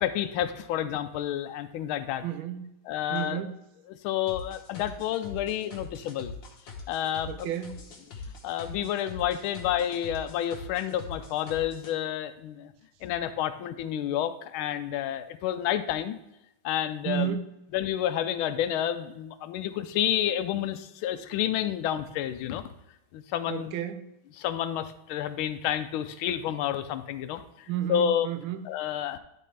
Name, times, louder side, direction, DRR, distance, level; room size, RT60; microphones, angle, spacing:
voice 1, 0.0-2.2 2.9-3.4 3.9-6.4 6.9-7.5 8.4-12.7 13.0-16.2 16.6-17.4 17.7-22.6 23.1-23.7 24.4-28.3 28.7-29.2, left 10 dB, 75° left, 11 dB, 1.3 m, -30 dB
voice 2, 2.2-2.8 3.1-3.6 7.3-7.9 17.0-17.5 23.5-24.2 27.7-28.6, right 10 dB, 75° right, 11 dB, 1.3 m, -32 dB
sound 1, 4.3-11.9, left 4 dB, 60° left, 1.8 m, -43 dB
11.0 x 4.2 x 3.3 m, 0.90 s
omnidirectional pair, 2.4 m